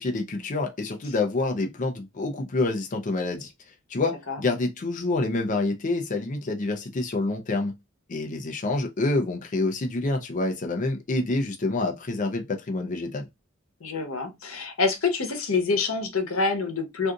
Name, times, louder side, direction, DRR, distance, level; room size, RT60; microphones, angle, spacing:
voice 1, 0.0-7.7 8.1-13.3, left 2 dB, 40° left, 0.5 m, -27 dB
voice 2, 13.8-17.1, left 4 dB, 85° left, 0.9 m, -26 dB
2.5 x 2.4 x 3.7 m
head